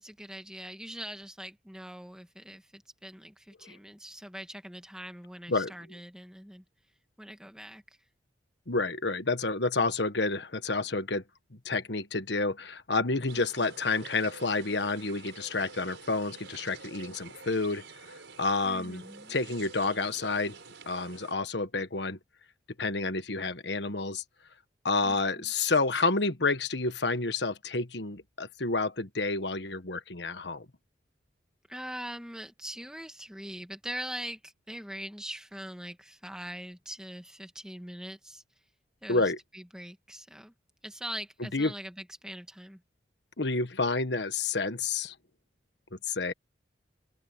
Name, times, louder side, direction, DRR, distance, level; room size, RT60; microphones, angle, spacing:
voice 1, 0.0-6.6 7.2-7.8 18.6-19.4 25.0-25.5 31.7-38.4 39.0-40.5 40.8-42.8, right 1 dB, 5° right, 1.9 m, -42 dB
voice 2, 8.7-11.2 11.5-17.8 18.4-19.0 19.3-20.6 20.9-22.2 22.8-24.2 24.8-30.7 39.1-39.4 41.4-41.7 43.4-45.1 45.9-46.3, left 3 dB, 70° left, 1.5 m, -29 dB
sound 1, 13.3-21.3, right 4 dB, 90° right, 5.5 m, -48 dB
open air
head